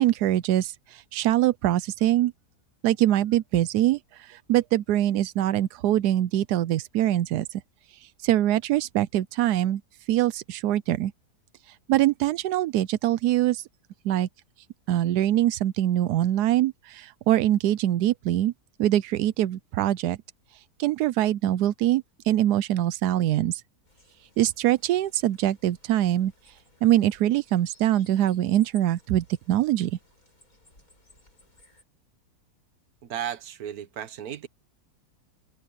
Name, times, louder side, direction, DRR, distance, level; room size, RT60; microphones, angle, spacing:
voice 1, 0.0-2.3 2.8-7.5 8.0-9.8 10.1-11.1 11.7-13.6 14.0-14.3 14.9-18.5 18.8-20.2 20.5-23.6 24.4-26.5 26.8-29.9, right 13 dB, 90° right, 1.2 m, -23 dB
sound 1, 23.8-31.8, left 2 dB, 60° left, 8.1 m, -59 dB
voice 2, 33.0-34.5, right 9 dB, 70° right, 1.5 m, -34 dB
omnidirectional pair, 1.7 m